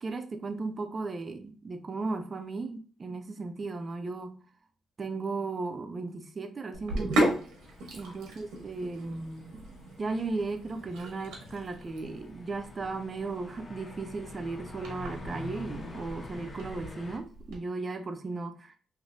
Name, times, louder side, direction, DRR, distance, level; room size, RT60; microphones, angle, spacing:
voice 1, 0.0-4.3 5.0-7.4 7.9-9.6 10.0-18.8, right 3 dB, 35° right, 0.5 m, -36 dB
Sink (filling or washing), 6.7-17.6, right 1 dB, 85° right, 1.0 m, -36 dB
sound 1, 7.6-17.2, left 2 dB, 40° left, 0.8 m, -47 dB
3.2 x 2.7 x 2.6 m
cardioid pair, 90°, 0 cm